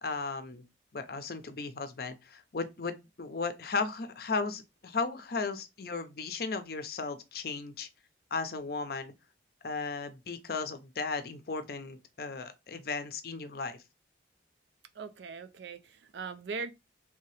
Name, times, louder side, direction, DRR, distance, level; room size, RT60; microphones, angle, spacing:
voice 1, 0.0-0.6 0.9-7.9 8.3-9.1 9.6-13.8, left 4 dB, 55° left, 0.5 m, -35 dB
voice 2, 15.0-16.7, right 4 dB, 70° right, 0.5 m, -40 dB
3.3 x 2.8 x 3.2 m
head